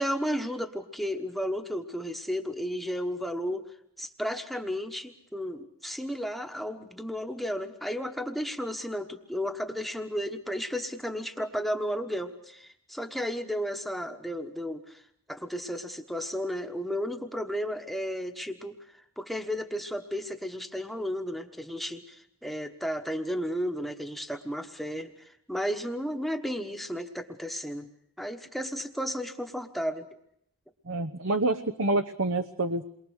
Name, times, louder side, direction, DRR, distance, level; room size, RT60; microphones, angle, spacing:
voice 1, 0.0-3.6 4.0-15.0 15.3-18.8 19.2-27.9 28.2-30.1, equal, ahead, 5 dB, 1.2 m, -33 dB
voice 2, 30.9-32.8, right 2 dB, 65° right, 8 dB, 0.9 m, -27 dB
28.5 x 23.0 x 6.5 m, 0.72 s
head